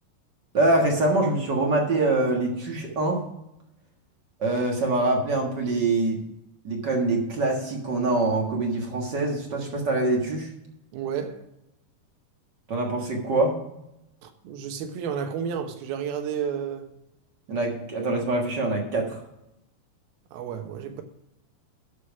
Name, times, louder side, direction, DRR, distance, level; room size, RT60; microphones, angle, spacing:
voice 1, 0.5-3.2 4.4-6.2 6.6-10.5 12.7-13.6 17.5-19.2, right 2 dB, 50° right, 1.4 m, -24 dB
voice 2, 10.9-11.5 14.2-16.9 20.3-21.0, right 7 dB, 85° right, 3.0 m, -31 dB
12.0 x 4.9 x 5.9 m
omnidirectional pair, 4.3 m